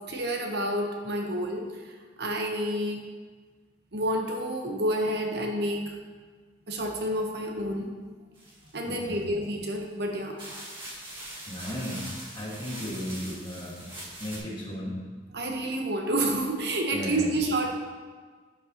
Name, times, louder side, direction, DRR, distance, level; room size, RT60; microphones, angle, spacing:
voice 1, 0.0-3.0 3.9-6.0 6.7-7.9 8.7-10.4 15.3-17.7, right 1 dB, 60° right, 1 dB, 1.0 m, -29 dB
sound 1, 8.4-9.2 9.9-10.0 10.4-14.4, right 1 dB, 25° right, 1.9 m, -42 dB
voice 2, 8.9-9.2 11.5-13.9 14.2-15.0 16.9-17.3, equal, 25° left, -5 dB, 1.9 m, -35 dB
11.5 x 6.5 x 3.0 m, 1.5 s
head